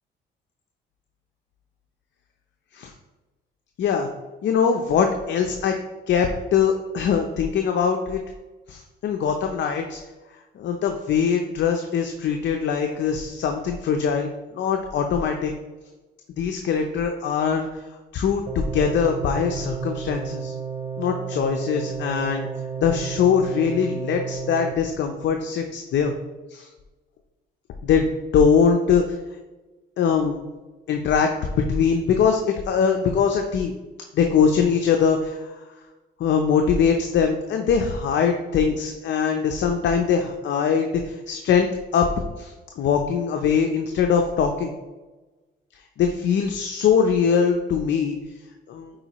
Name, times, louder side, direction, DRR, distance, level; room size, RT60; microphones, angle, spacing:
voice 1, 3.8-4.1 4.4-5.7 6.1-8.2 8.7-10.0 10.6-15.5 16.4-17.8 18.1-20.5 21.0-22.5 22.8-26.1 26.5-26.7 27.8-28.1 28.3-29.0 30.0-30.3 30.9-33.7 34.1-35.6 36.2-42.1 42.4-44.7 46.0-48.2 48.7-48.9, left 6 dB, 65° left, 4 dB, 0.6 m, -22 dB
sound 1, 18.5-24.7, right 6 dB, 25° right, 0.5 m, -32 dB
8.8 x 4.7 x 3.0 m, 1.2 s
cardioid pair, 90°, 20 cm